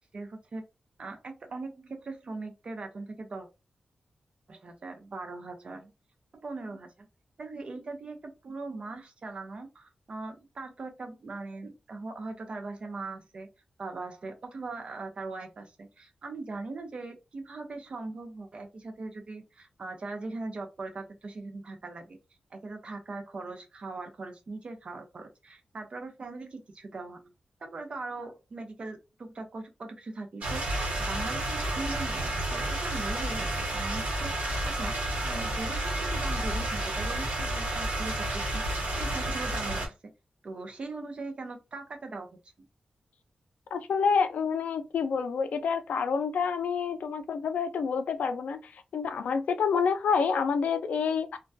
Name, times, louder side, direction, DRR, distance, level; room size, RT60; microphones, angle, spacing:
voice 1, 0.1-0.6 1.0-3.5 4.5-5.9 6.3-7.1 7.4-13.5 13.8-22.2 22.5-27.3 27.6-30.6 31.0-34.9 35.2-39.9 40.4-42.4, right 3 dB, 50° right, 0.5 m, -40 dB
sound 1, 30.4-39.9, right 1 dB, 80° right, 0.9 m, -31 dB
voice 2, 43.7-51.4, left 6 dB, 85° left, 0.3 m, -28 dB
2.2 x 2.2 x 2.5 m
wide cardioid pair, 125°, 2 cm